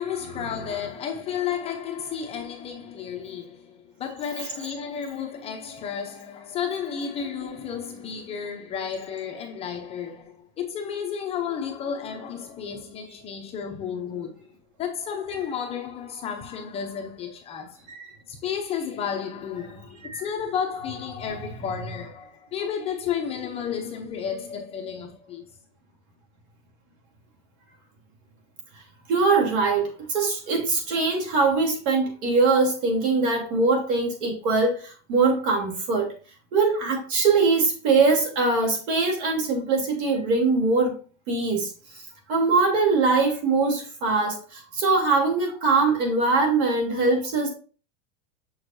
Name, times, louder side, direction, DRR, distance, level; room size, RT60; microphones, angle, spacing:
voice 1, 0.0-17.8 18.3-25.4, left 7 dB, 20° left, 0.7 m, -32 dB
voice 2, 29.1-36.1 36.5-41.0 41.3-41.7 42.3-47.5, right 3 dB, 60° right, 3.3 m, -22 dB
7.1 x 6.3 x 2.7 m
supercardioid pair, 170°, 31 cm